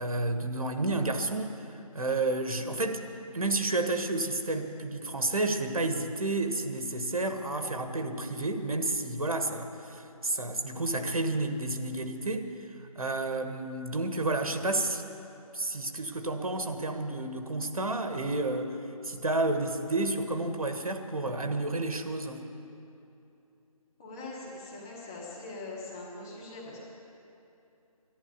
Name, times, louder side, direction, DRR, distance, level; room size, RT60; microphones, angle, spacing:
voice 1, 0.0-1.6 1.9-3.0 3.3-12.5 12.9-15.1 15.5-18.8 19.0-22.4, right 2 dB, 70° right, 6 dB, 1.5 m, -30 dB
voice 2, 24.0-26.8, left 2 dB, 5° left, -5 dB, 0.5 m, -42 dB
11.5 x 11.5 x 9.4 m, 2.8 s
figure-of-eight pair, 160°, 19 cm